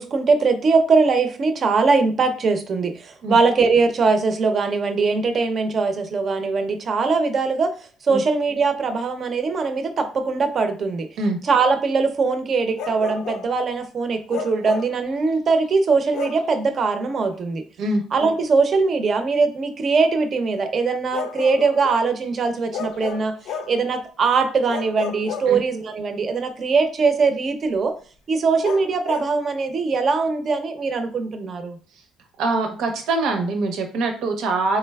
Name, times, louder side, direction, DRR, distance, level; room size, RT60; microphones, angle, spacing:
voice 1, 0.0-7.7 8.0-11.1 11.4-17.6 18.1-23.3 23.7-27.9 28.3-31.8, right 4 dB, 40° right, 7 dB, 0.6 m, -21 dB
Bark, 12.8-13.5 14.3-15.0 16.1-16.5 18.2-18.3 21.1-22.1 22.7-23.8 24.7-26.0 28.6-29.4, left 6 dB, 80° left, 0.4 m, -32 dB
voice 2, 32.4-34.8, right 3 dB, 75° right, 5 dB, 0.7 m, -23 dB
3.7 x 3.2 x 2.3 m, 0.41 s
cardioid pair, 130°, 0 cm